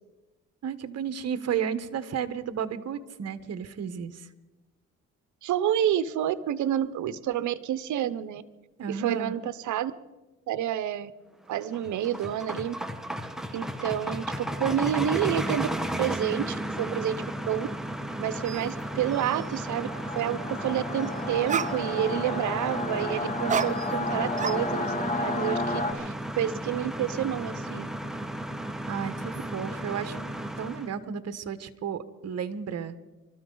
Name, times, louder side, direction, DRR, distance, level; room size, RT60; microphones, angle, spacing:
voice 1, 0.6-4.3 8.8-9.4 28.9-30.3 30.6-33.0, right 7 dB, 55° right, 12 dB, 1.2 m, -33 dB
voice 2, 5.4-8.4 8.9-9.9 10.5-11.1 11.5-12.7 13.5-15.7 16.0-17.7 18.2-19.9 20.1-27.9, right 10 dB, 75° right, 15 dB, 0.9 m, -29 dB
sound 1, 11.5-30.9, right 1 dB, ahead, 1.3 m, -34 dB
sound 2, 18.5-18.7 19.1-19.6 21.1-21.2 21.5-22.2 23.5-24.1 24.4-25.1, right 7 dB, 25° right, 0.4 m, -32 dB
Singing / Musical instrument, 18.8-25.9, left 2 dB, 25° left, 2.3 m, -32 dB
25.0 x 13.5 x 3.9 m, 1.1 s
cardioid pair, 90°, 30 cm